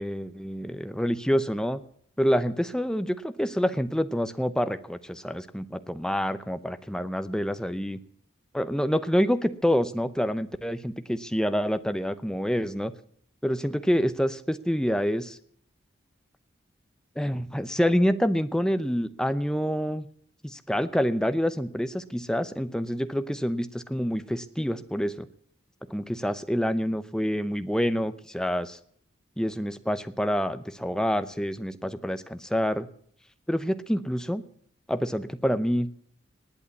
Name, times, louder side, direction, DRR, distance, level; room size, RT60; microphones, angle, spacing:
voice 1, 0.0-1.8 2.2-8.0 8.5-12.9 13.4-15.4 17.2-20.1 20.4-25.3 25.9-28.8 29.4-32.9 33.5-34.4 34.9-35.9, equal, 5° left, 11 dB, 0.7 m, -27 dB
19.5 x 8.6 x 8.3 m, 0.62 s
head